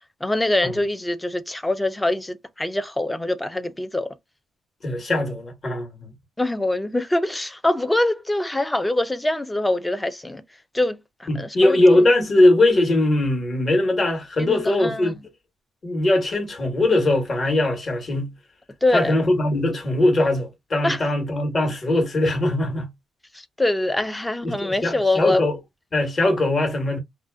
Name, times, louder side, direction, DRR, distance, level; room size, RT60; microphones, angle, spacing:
voice 1, 0.2-4.1 6.4-10.4 10.7-11.8 14.4-15.1 18.8-19.1 20.8-21.0 23.6-25.4, left 1 dB, 10° left, 0.4 m, -24 dB
voice 2, 4.8-6.1 11.3-15.2 15.8-18.3 18.9-22.9 24.4-25.6 25.9-27.0, left 1 dB, 40° left, 1.2 m, -20 dB
2.5 x 2.4 x 2.2 m
cardioid pair, 90°, 0 cm